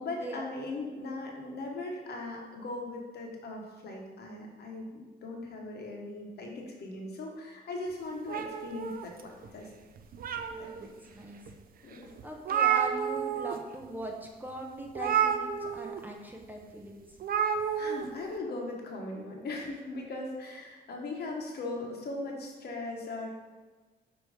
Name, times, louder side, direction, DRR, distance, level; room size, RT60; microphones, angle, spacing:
voice 1, 0.0-9.7 10.6-10.7 11.1-11.2 11.8-12.1 17.7-23.3, left 2 dB, 65° left, 0 dB, 1.3 m, -39 dB
sound 1, 8.3-9.5 10.0-10.9 11.5-11.6 11.9-12.0 12.2-13.6 13.8-14.1 14.9-16.0 17.2-18.0, right 8 dB, 55° right, 0.5 m, -30 dB
voice 2, 10.5-11.6 11.9-17.2, equal, 10° right, 1 dB, 0.9 m, -41 dB
6.2 x 3.0 x 5.0 m, 1.3 s
cardioid pair, 75°, 18 cm